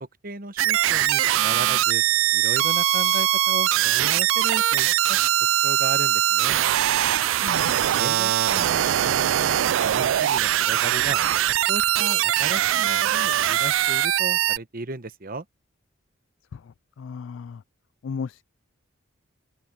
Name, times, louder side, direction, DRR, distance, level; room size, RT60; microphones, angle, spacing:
voice 1, 0.0-2.0 2.3-5.2 5.6-6.6 8.0-11.2 11.7-15.4, right 2 dB, 45° right, 1.0 m, -35 dB
sound 1, 0.6-14.6, right 12 dB, 65° right, 0.3 m, -21 dB
sound 2, 2.4-3.2, left 11 dB, 50° left, 1.8 m, -39 dB
sound 3, 3.1-12.5, equal, 25° left, 6.3 m, -67 dB
voice 2, 7.4-7.8 16.5-17.6 18.0-18.4, left 5 dB, 65° left, 0.3 m, -35 dB
open air
head